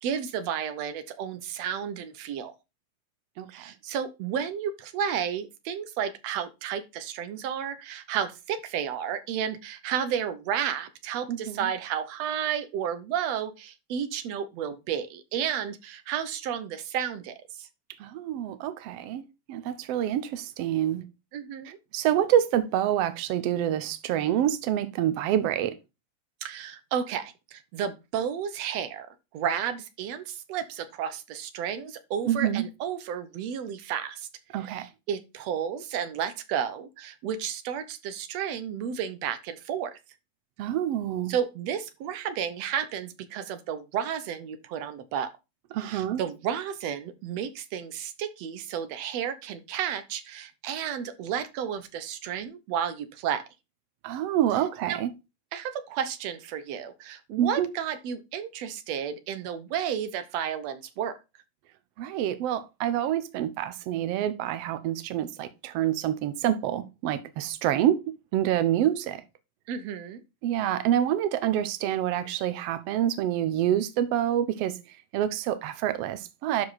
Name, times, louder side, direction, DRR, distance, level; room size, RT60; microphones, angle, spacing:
voice 1, 0.0-2.5 3.5-17.7 21.3-21.8 26.4-29.1 29.3-34.3 34.6-40.0 41.3-45.3 45.8-53.4 54.9-55.0 55.5-61.1 69.7-70.2, right 8 dB, 70° right, 1.6 m, -32 dB
voice 2, 11.3-11.7 18.0-19.2 19.5-21.0 21.6-25.8 32.2-32.7 34.5-34.9 40.6-41.3 45.7-46.2 54.0-55.1 57.4-57.7 62.0-68.0 68.3-69.2 70.4-76.6, right 11 dB, 90° right, 1.3 m, -27 dB
12.0 x 4.8 x 4.1 m
omnidirectional pair, 4.0 m